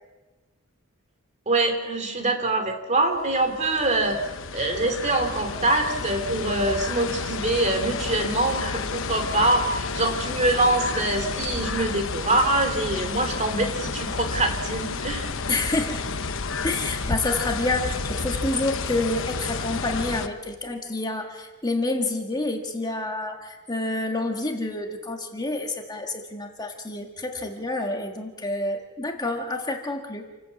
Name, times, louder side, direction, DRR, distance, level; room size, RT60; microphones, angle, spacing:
voice 1, 1.5-4.2 4.5-15.3, right 2 dB, 30° right, 6 dB, 2.7 m, -24 dB
sound 1, 3.2-20.3, left 4 dB, 65° left, 1.1 m, -31 dB
voice 2, 15.5-16.0 16.6-30.3, left 2 dB, 20° left, 2 dB, 1.9 m, -28 dB
28.5 x 14.0 x 8.4 m, 1.2 s
head